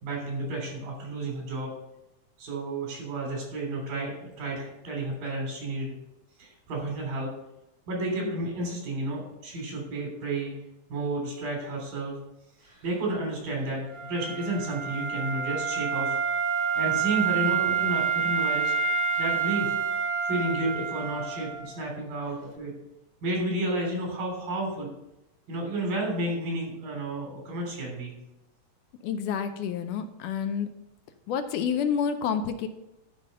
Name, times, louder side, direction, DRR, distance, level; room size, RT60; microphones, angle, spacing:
voice 1, 0.0-1.7 2.4-6.0 6.4-7.3 7.9-10.5 10.9-12.1 12.8-16.2 16.7-18.7 19.2-19.8 20.2-22.7 23.2-24.9 25.5-28.2, right 2 dB, 85° right, -1 dB, 5.0 m, -31 dB
Wind instrument woodwind instrument, 13.9-21.7, right 7 dB, 55° right, 0.4 m, -28 dB
voice 2, 29.0-30.7 31.3-32.7, left 7 dB, 80° left, 8 dB, 2.1 m, -29 dB
12.0 x 5.0 x 5.4 m, 0.89 s
omnidirectional pair, 3.9 m